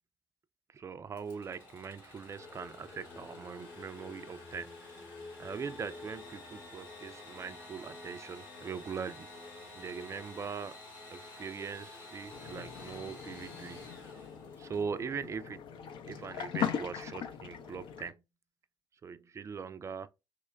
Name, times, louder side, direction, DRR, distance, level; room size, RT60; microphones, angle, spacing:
voice 1, 0.7-4.8 5.4-9.3 9.7-10.7 11.1-13.9 14.6-15.6 16.1-18.1 19.0-20.1, right 6 dB, 30° right, 0.3 m, -41 dB
Engine / Sawing, 1.1-14.8, left 2 dB, 80° left, 1.2 m, -51 dB
sound 1, 2.4-17.2, left 3 dB, 35° left, 0.9 m, -53 dB
sound 2, 12.3-18.1, left 8 dB, 60° left, 0.5 m, -40 dB
3.0 x 2.2 x 3.3 m
hypercardioid pair, 50°, 10 cm